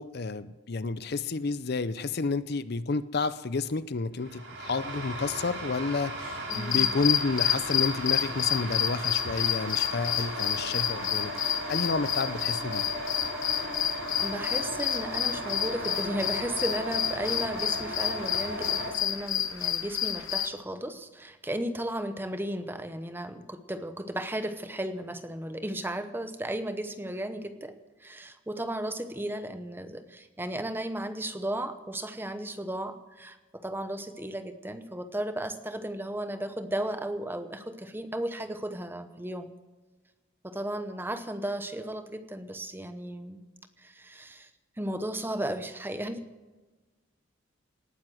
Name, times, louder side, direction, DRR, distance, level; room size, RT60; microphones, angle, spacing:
voice 1, 0.0-12.9, left 3 dB, 50° left, 15 dB, 0.6 m, -30 dB
sound 1, 4.2-18.9, right 1 dB, 60° right, 4.8 m, -36 dB
sound 2, 6.5-20.5, left 10 dB, 75° left, 1.3 m, -30 dB
voice 2, 6.5-6.9 14.2-27.7 28.0-39.5 40.4-43.4 43.8-44.5 44.8-46.2, right 1 dB, 10° right, 10 dB, 0.8 m, -35 dB
18.5 x 9.5 x 7.8 m, 1.2 s
head